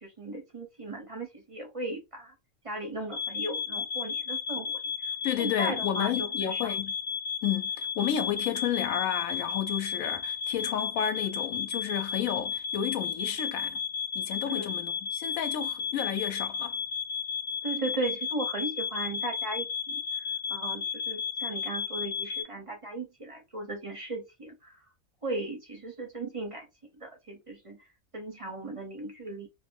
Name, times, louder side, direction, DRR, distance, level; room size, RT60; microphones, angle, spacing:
voice 1, 0.0-2.3 2.6-4.8 5.4-6.6 14.5-14.7 17.6-20.0 20.5-24.7 25.2-26.7 27.0-27.8 28.1-29.5, right 2 dB, 35° right, 0.5 m, -36 dB
sound 1, 3.1-22.4, left 6 dB, 65° left, 0.5 m, -33 dB
voice 2, 5.2-6.9 7.4-13.8 14.1-16.8, left 10 dB, 85° left, 1.0 m, -31 dB
2.5 x 2.0 x 3.4 m
omnidirectional pair, 1.4 m